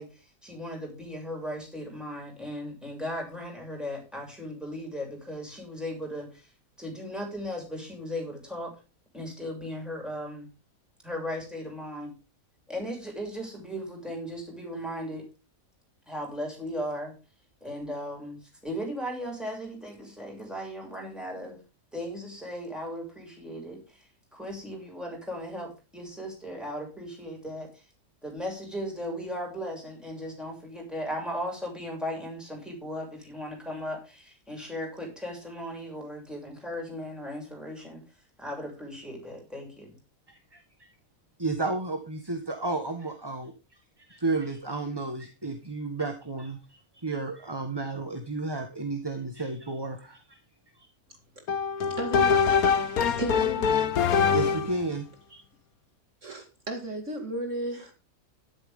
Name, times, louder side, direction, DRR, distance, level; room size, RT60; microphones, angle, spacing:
voice 1, 0.0-6.5 6.8-8.7 9.1-10.5 11.0-12.1 12.7-15.3 16.1-17.1 17.6-21.6 21.9-24.1 24.3-27.8 28.2-38.0 38.4-40.0, equal, ahead, 7.0 m, -37 dB
voice 2, 40.3-40.9 41.4-50.4 50.7-50.9 54.1-55.0, right 3 dB, 15° right, 1.4 m, -33 dB
sound 1, 51.5-54.8, left 6 dB, 80° left, 1.6 m, -24 dB
voice 3, 51.9-52.4 53.0-54.3 55.3-55.4 56.2-57.9, right 1 dB, 55° right, 2.6 m, -35 dB
13.0 x 12.0 x 3.7 m
omnidirectional pair, 1.5 m